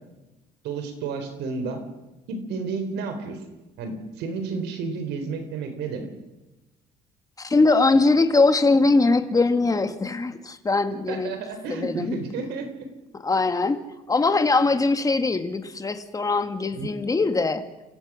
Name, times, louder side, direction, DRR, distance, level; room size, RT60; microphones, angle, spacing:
voice 1, 0.6-1.8 2.3-3.4 3.8-6.1 11.1-12.9 16.7-17.0, right 4 dB, 90° right, 7 dB, 4.2 m, -31 dB
voice 2, 7.4-11.3 11.7-12.2 13.2-13.8 14.1-17.6, left 3 dB, 20° left, 8 dB, 1.8 m, -21 dB
28.5 x 16.0 x 6.4 m, 1.0 s
cardioid pair, 110°, 17 cm